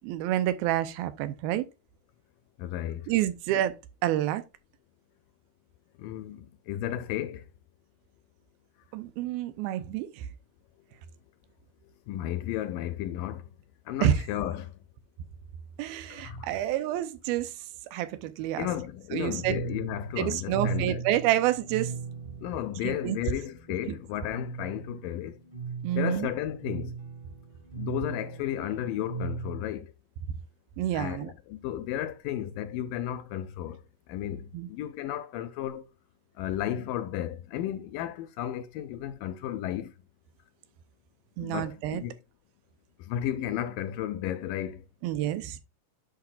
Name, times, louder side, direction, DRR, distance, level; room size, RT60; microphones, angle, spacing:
voice 1, 0.0-1.6 3.1-3.7 4.0-4.4 8.9-10.3 14.0-14.1 15.8-17.5 17.9-18.7 19.1-19.6 20.2-21.9 22.8-23.2 25.8-26.3 30.8-31.3 34.5-34.7 41.4-42.0 45.0-45.6, right 12 dB, 85° right, 2.6 m, -28 dB
voice 2, 2.6-3.1 6.0-7.5 12.1-13.4 13.9-14.7 16.1-16.5 18.6-21.0 22.4-25.4 26.0-26.9 27.8-29.9 30.9-33.8 34.1-35.8 36.4-39.9 41.4-42.2 43.0-44.8, left 11 dB, 80° left, 2.1 m, -33 dB
sound 1, 19.4-29.6, right 6 dB, 35° right, 0.4 m, -38 dB
10.0 x 5.8 x 2.4 m
omnidirectional pair, 4.3 m